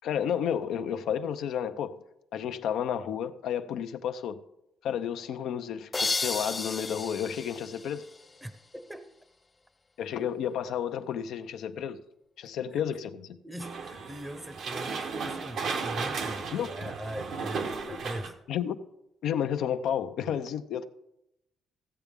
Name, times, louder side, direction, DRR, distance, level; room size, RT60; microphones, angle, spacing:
voice 1, 0.0-2.0 2.3-4.4 4.8-8.0 10.0-12.0 12.4-13.4 16.5-16.9 17.8-18.0 18.5-18.8 19.2-20.8, left 9 dB, 80° left, 0.6 m, -31 dB
sound 1, 5.9-8.7, left 3 dB, 25° left, 0.4 m, -33 dB
voice 2, 8.4-9.1 12.7-12.8 13.4-18.4, equal, 10° right, 0.7 m, -41 dB
sound 2, 13.6-18.3, right 5 dB, 70° right, 1.1 m, -35 dB
15.0 x 8.1 x 3.6 m
cardioid pair, 90°, 0 cm